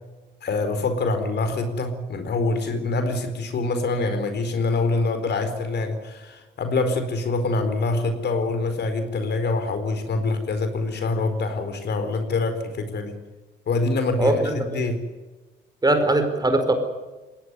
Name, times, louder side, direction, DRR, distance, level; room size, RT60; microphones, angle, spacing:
voice 1, 0.4-13.2 13.7-15.0, left 3 dB, 60° left, 8 dB, 4.4 m, -25 dB
voice 2, 14.2-14.8 15.8-16.7, right 2 dB, 20° right, 8 dB, 4.8 m, -21 dB
20.5 x 18.0 x 9.7 m, 1.2 s
cardioid pair, 90°, 20 cm